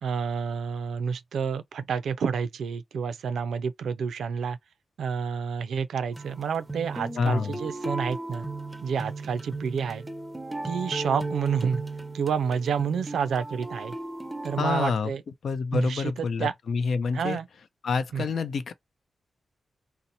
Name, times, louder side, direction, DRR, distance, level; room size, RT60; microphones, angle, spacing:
voice 1, 0.0-4.6 5.0-8.5 8.8-10.0 10.6-11.8 12.1-13.9 14.4-15.2 15.7-16.5 17.1-17.5 18.1-18.2, right 6 dB, 90° right, 0.3 m, -29 dB
sound 1, 6.1-14.6, right 2 dB, 20° right, 0.5 m, -36 dB
voice 2, 7.2-7.6 14.6-15.1 15.4-17.4 17.8-18.7, left 5 dB, 70° left, 0.4 m, -27 dB
2.6 x 2.0 x 2.7 m
cardioid pair, 80°, 0 cm